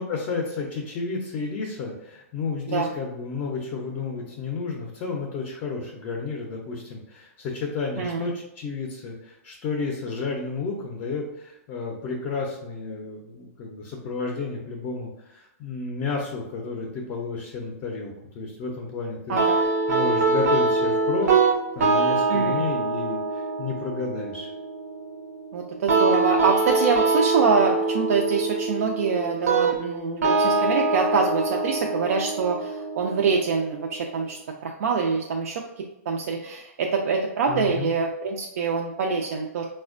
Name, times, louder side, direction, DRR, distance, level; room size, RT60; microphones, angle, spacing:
voice 1, 0.0-19.4 19.9-21.3 21.8-24.5 37.5-37.9, left 4 dB, 25° left, 0 dB, 0.5 m, -31 dB
voice 2, 8.0-8.3 19.3-19.6 22.3-22.6 25.5-39.6, right 5 dB, 70° right, 1 dB, 0.4 m, -25 dB
sound 1, 19.4-34.3, right 3 dB, 85° right, 0.7 m, -24 dB
4.1 x 2.1 x 2.4 m, 0.88 s
hypercardioid pair, 155°, 8 cm